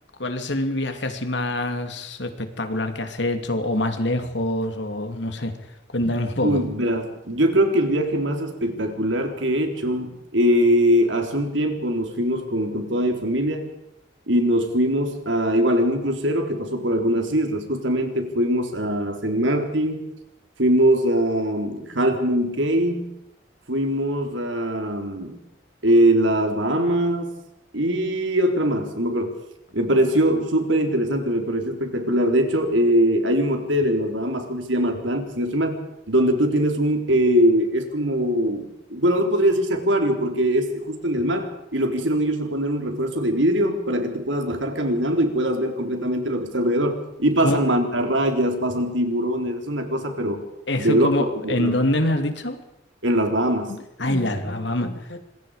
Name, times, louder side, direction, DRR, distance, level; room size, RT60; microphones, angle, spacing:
voice 1, 0.2-5.6 5.9-6.6 47.4-47.6 50.7-52.6 53.7-55.2, left 1 dB, 65° left, 7 dB, 2.8 m, -25 dB
voice 2, 6.1-13.7 14.3-20.1 20.6-23.1 23.7-25.4 25.8-27.4 27.7-29.4 29.7-35.8 36.1-50.5 50.8-51.1 51.4-51.7 53.0-53.7, equal, 75° right, 5 dB, 3.9 m, -22 dB
26.5 x 21.5 x 5.1 m, 0.84 s
head